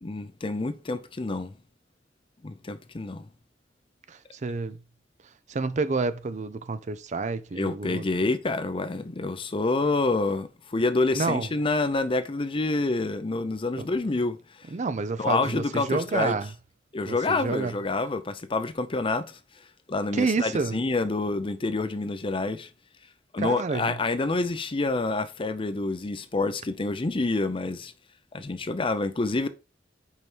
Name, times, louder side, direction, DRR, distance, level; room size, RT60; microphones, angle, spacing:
voice 1, 0.0-1.5 2.4-3.3 7.6-14.4 15.2-16.4 16.9-19.4 19.9-22.7 23.3-27.9 28.3-29.5, left 3 dB, 30° left, 0.5 m, -27 dB
voice 2, 4.1-4.8 5.5-8.1 11.1-11.5 13.8-13.9 14.7-16.5 17.1-17.7 20.1-20.8 23.4-23.9, right 3 dB, 40° right, 0.5 m, -29 dB
5.5 x 4.7 x 4.4 m
head